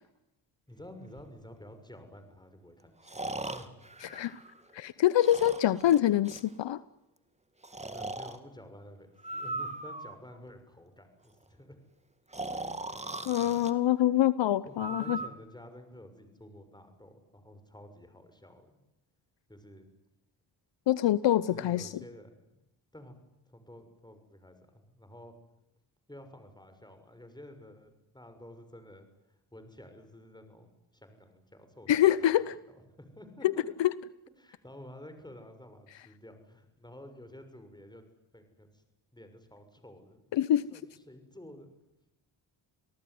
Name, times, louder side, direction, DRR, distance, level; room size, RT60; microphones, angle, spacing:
voice 1, 0.7-3.7 4.1-4.2 7.9-11.8 12.5-12.6 14.6-18.8 19.5-19.9 21.5-22.5 22.9-23.2 23.5-25.3 26.1-32.5 33.0-33.6 34.4-38.0 38.3-38.8 39.1-40.3 40.7-41.7, left 1 dB, 10° left, 8 dB, 6.6 m, -51 dB
Breathing, 1.2-1.3 3.0-4.8 5.2-6.5 7.6-8.4 9.2-10.4 12.3-13.7 14.8-15.3, right 2 dB, 15° right, 2.6 m, -39 dB
voice 2, 4.0-4.4 4.7-6.8 13.3-15.2 20.9-21.9 31.9-32.5 33.4-33.5 33.8-33.9 40.3-40.7, left 12 dB, 70° left, 17 dB, 1.0 m, -25 dB
28.5 x 18.5 x 9.6 m, 0.90 s
cardioid pair, 70°, 46 cm